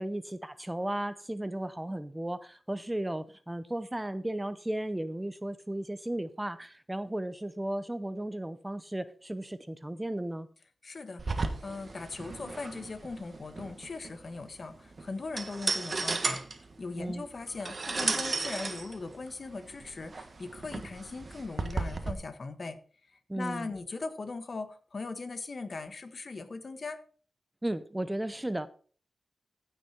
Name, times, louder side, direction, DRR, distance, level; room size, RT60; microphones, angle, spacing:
voice 1, 0.0-10.5 17.0-17.2 23.3-23.7 27.6-28.7, right 1 dB, 10° right, 0.6 m, -35 dB
voice 2, 10.8-16.4 16.8-22.8 23.1-27.0, left 3 dB, 50° left, 1.3 m, -39 dB
sound 1, 11.2-22.1, right 3 dB, 45° right, 1.5 m, -35 dB
15.0 x 6.3 x 4.3 m
wide cardioid pair, 90°, 0 cm